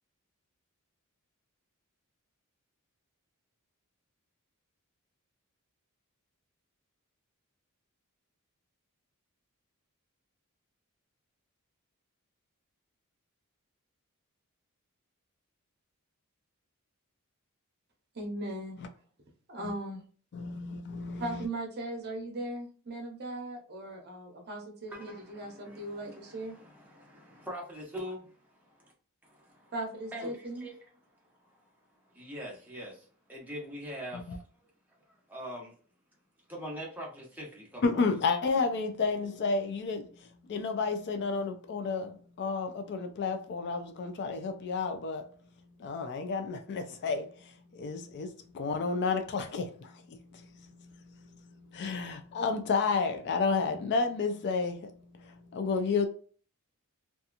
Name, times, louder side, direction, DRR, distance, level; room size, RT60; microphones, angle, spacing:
voice 1, 18.1-18.8 19.5-20.0 21.2-26.6 29.7-30.7, right 1 dB, 50° right, 0.9 m, -38 dB
voice 2, 20.3-21.4 34.3-34.4 37.8-40.1 40.5-45.3 45.8-56.1, left 4 dB, 50° left, 0.4 m, -31 dB
voice 3, 24.9-28.9 29.2-29.7 30.1-30.7 31.4-31.6 32.1-34.7 35.0-35.7 36.5-38.1, equal, 10° right, 0.9 m, -43 dB
2.7 x 2.3 x 2.5 m
head